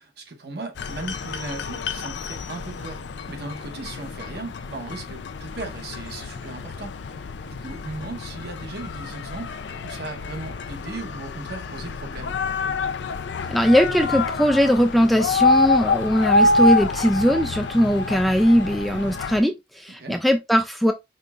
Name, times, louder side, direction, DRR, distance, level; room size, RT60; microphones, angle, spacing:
voice 1, 0.0-12.4 20.0-20.2, right 3 dB, 60° right, 1.0 m, -37 dB
sound 1, 0.8-19.4, left 3 dB, 70° left, 0.4 m, -27 dB
voice 2, 13.5-20.9, equal, ahead, 0.3 m, -20 dB
5.2 x 3.3 x 2.4 m
head